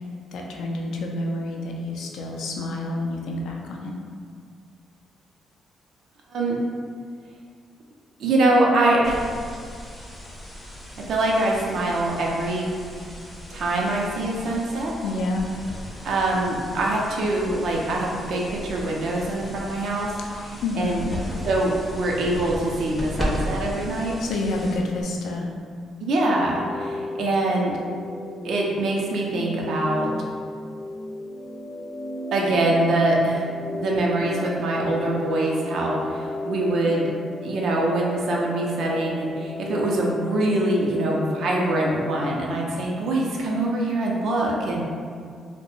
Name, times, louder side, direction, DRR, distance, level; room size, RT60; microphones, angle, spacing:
voice 1, 0.3-3.9 15.0-15.5 20.3-21.2 24.2-25.5, left 2 dB, 75° left, 0 dB, 0.3 m, -28 dB
voice 2, 8.2-9.3 11.0-12.7 13.5-14.9 16.0-20.1 20.4-21.0 21.4-24.2 26.0-27.8 28.4-30.1 32.3-33.5 33.7-37.1 37.4-44.8, right 2 dB, 70° right, -2 dB, 0.4 m, -24 dB
sound 1, 9.0-25.0, equal, 20° left, 0.5 m, -36 dB
sound 2, 26.3-42.2, left 1 dB, 60° left, 0.8 m, -34 dB
2.3 x 2.1 x 3.0 m, 2.1 s
cardioid pair, 90°, 0 cm